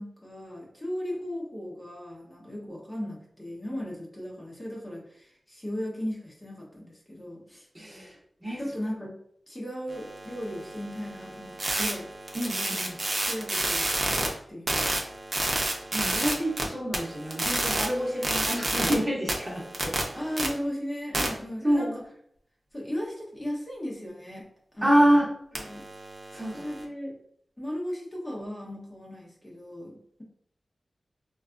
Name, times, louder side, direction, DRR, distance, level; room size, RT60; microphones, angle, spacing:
voice 1, 0.0-7.7 8.6-9.1 9.5-12.1 12.7-14.2 14.5-15.0 20.1-22.0 22.7-25.2 25.5-25.8 26.5-27.2 27.6-30.2, equal, 20° left, -4 dB, 0.9 m, -37 dB
voice 2, 7.7-8.1 8.4-8.6 12.3-12.9 15.9-20.0 21.6-21.9 24.8-25.3 26.3-26.6, equal, 15° right, -3 dB, 0.9 m, -26 dB
sound 1, 9.9-14.3 14.7-16.6 16.9-18.9 19.3-20.5 21.1-21.3 25.6-26.8, right 2 dB, 50° right, 0.7 m, -30 dB
3.9 x 2.3 x 2.5 m, 0.68 s
wide cardioid pair, 70°, 0 cm